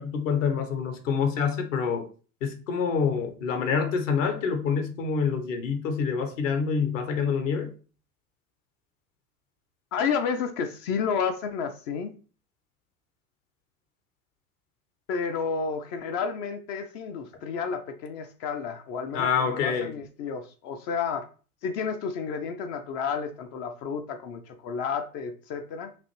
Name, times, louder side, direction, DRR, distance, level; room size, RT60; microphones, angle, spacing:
voice 1, 0.0-2.0 2.4-7.7 19.1-19.9, left 6 dB, 55° left, 1.0 m, -26 dB
voice 2, 9.9-12.1 15.1-21.3 21.6-25.9, left 6 dB, 30° left, 0.5 m, -31 dB
6.0 x 2.5 x 3.0 m
figure-of-eight pair, 80°, 45 cm